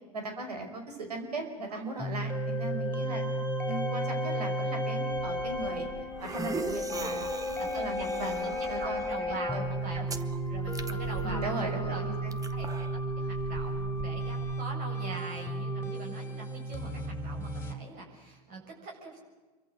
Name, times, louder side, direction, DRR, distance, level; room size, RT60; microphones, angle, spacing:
voice 1, 0.1-3.3 3.7-5.9 6.2-9.7 9.9-10.1 11.2-12.3, right 2 dB, 80° right, 6 dB, 5.4 m, -38 dB
sound 1, 2.0-17.7, right 1 dB, 10° left, 3.9 m, -33 dB
sound 2, 5.1-14.6, right 5 dB, 15° right, 1.5 m, -42 dB
voice 2, 7.6-10.1 10.5-12.1 12.5-19.2, right 3 dB, 45° right, 0 dB, 7.7 m, -43 dB
28.0 x 23.5 x 7.9 m, 1.3 s
hypercardioid pair, 85°, 20 cm